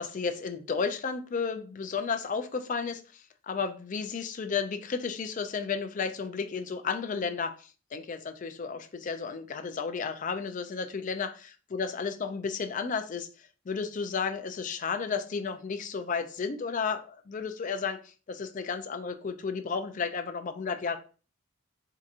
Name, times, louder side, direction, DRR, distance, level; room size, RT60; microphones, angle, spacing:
voice 1, 0.0-13.3 13.7-21.0, left 5 dB, 35° left, 8 dB, 0.4 m, -33 dB
4.7 x 2.7 x 2.4 m, 0.37 s
head